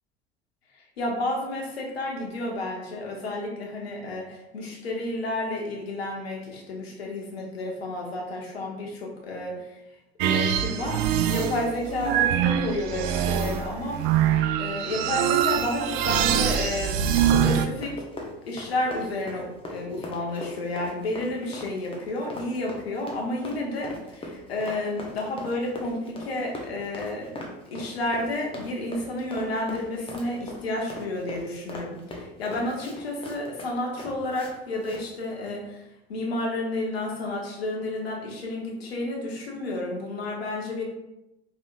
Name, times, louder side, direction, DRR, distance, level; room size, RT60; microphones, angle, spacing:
voice 1, 1.0-9.5 10.2-11.0 11.3-14.2 14.6-16.9 17.2-17.9 18.5-27.3 27.7-35.8 36.1-40.8, left 1 dB, 70° left, -1 dB, 1.2 m, -31 dB
sound 1, 10.2-17.7, right 9 dB, 45° right, 0.4 m, -24 dB
Run, 17.1-34.5 34.8-35.0, left 1 dB, 15° left, 1.0 m, -40 dB
5.1 x 4.0 x 2.6 m, 0.92 s
figure-of-eight pair, 70°, 32 cm